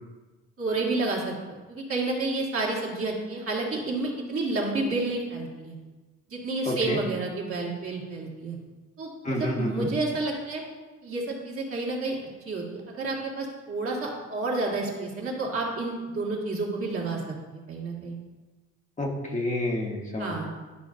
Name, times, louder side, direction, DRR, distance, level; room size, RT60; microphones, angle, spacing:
voice 1, 0.6-5.7 6.3-8.6 9.0-10.6 11.0-12.2 12.5-18.2 20.2-20.5, right 2 dB, 50° right, -3 dB, 2.0 m, -30 dB
voice 2, 6.7-7.0 9.2-9.9 19.0-20.3, left 1 dB, 25° left, -1 dB, 1.2 m, -29 dB
11.5 x 5.2 x 2.6 m, 1.2 s
cardioid pair, 90°, 30 cm